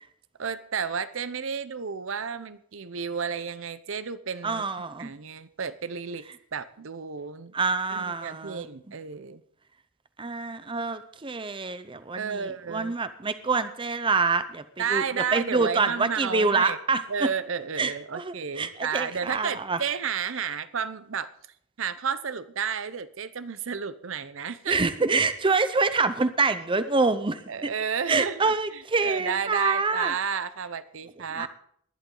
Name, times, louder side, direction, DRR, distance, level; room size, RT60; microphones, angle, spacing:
voice 1, 0.4-4.6 5.0-6.2 6.5-7.5 7.9-9.4 12.1-12.9 14.8-16.8 17.1-21.3 21.8-24.8 27.5-31.5, right 6 dB, 65° right, 14 dB, 0.7 m, -32 dB
voice 2, 4.4-5.1 7.5-8.7 10.2-14.6 14.9-15.0 15.3-17.3 17.8-19.8 24.7-27.7 28.1-30.1 31.3-31.5, right 4 dB, 25° right, 12 dB, 0.6 m, -26 dB
19.0 x 11.0 x 3.9 m, 0.66 s
head